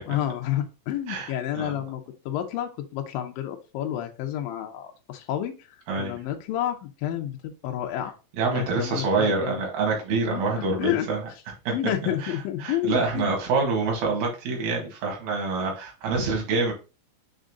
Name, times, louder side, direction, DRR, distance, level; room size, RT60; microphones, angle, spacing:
voice 1, 0.1-2.0 2.3-8.2 8.5-9.6 10.3-11.1 11.7-13.3, left 11 dB, 80° left, 3 dB, 2.5 m, -30 dB
voice 2, 1.1-1.7 5.9-6.2 8.4-11.2 11.7-11.8 12.0-12.3 12.6-16.7, right 4 dB, 85° right, 0 dB, 3.6 m, -26 dB
7.3 x 3.9 x 3.7 m, 0.30 s
omnidirectional pair, 4.1 m